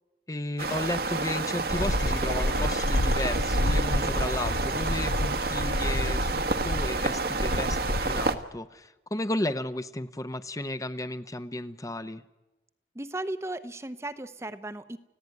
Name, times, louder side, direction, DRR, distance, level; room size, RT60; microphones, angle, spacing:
voice 1, 0.3-12.2, left 1 dB, 20° left, 11 dB, 0.8 m, -34 dB
sound 1, 0.6-8.4, right 3 dB, 60° right, 1.4 m, -29 dB
sound 2, 1.7-8.4, left 1 dB, 70° left, 0.9 m, -29 dB
voice 2, 12.9-15.0, right 1 dB, 15° right, 11 dB, 0.7 m, -36 dB
29.5 x 16.0 x 9.5 m, 1.0 s
head